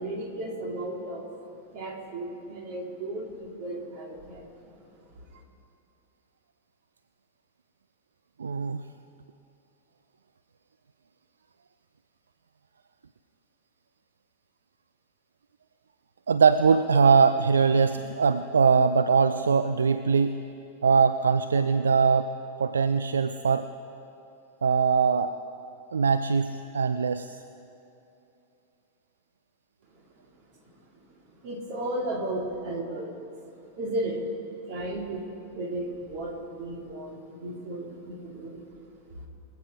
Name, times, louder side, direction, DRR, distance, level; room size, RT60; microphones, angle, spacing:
voice 1, 0.0-1.3 1.7-4.9 5.3-5.4 29.9-30.3 30.5-34.3 34.7-38.7 39.1-39.3, right 1 dB, 45° right, 1 dB, 2.7 m, -35 dB
voice 2, 8.4-8.8 16.3-20.4 20.8-22.3 22.6-23.7 24.6-25.3 25.9-27.4, right 5 dB, 70° right, 11 dB, 0.4 m, -22 dB
25.0 x 8.4 x 5.0 m, 2.8 s
figure-of-eight pair, 90°, 0 cm